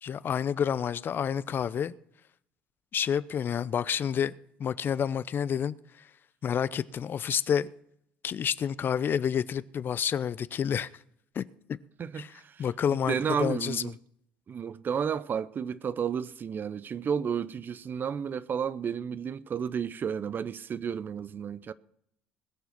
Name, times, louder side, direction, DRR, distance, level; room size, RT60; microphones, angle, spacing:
voice 1, 0.0-1.9 2.9-4.3 4.6-5.8 6.4-7.7 8.2-10.9 11.3-11.8 12.1-14.0, left 8 dB, 45° left, 0.6 m, -29 dB
voice 2, 12.0-12.6 13.1-13.9 14.5-21.7, right 7 dB, 40° right, 0.7 m, -32 dB
20.5 x 7.0 x 5.9 m
hypercardioid pair, 60°, 5 cm